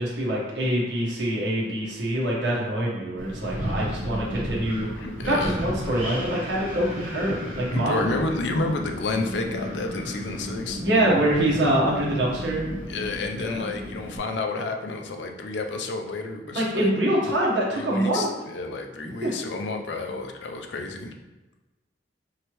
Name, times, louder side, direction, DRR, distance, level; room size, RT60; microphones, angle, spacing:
voice 1, 0.0-4.9 5.2-8.0 10.8-12.6 13.3-13.6 16.5-18.3 19.2-19.3, right 1 dB, 85° right, -5 dB, 1.2 m, -25 dB
Wind, 3.2-14.2, equal, 50° right, 1.2 m, -34 dB
voice 2, 5.0-5.6 7.7-10.8 12.9-16.9 17.7-21.1, left 3 dB, 85° left, 4 dB, 0.5 m, -30 dB
4.7 x 3.2 x 3.0 m, 1.1 s
head